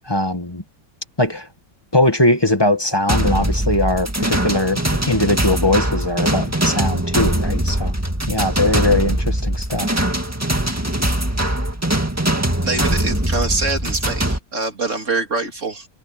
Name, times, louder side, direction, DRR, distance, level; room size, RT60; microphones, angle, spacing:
voice 1, 0.0-0.6 1.2-1.5 1.9-7.9 8.3-10.0 10.6-10.7, left 1 dB, 15° left, 1.6 m, -20 dB
sound 1, 3.1-14.4, right 1 dB, 10° right, 2.0 m, -21 dB
voice 2, 12.6-15.9, right 3 dB, 55° right, 3.3 m, -24 dB
omnidirectional pair, 1.6 m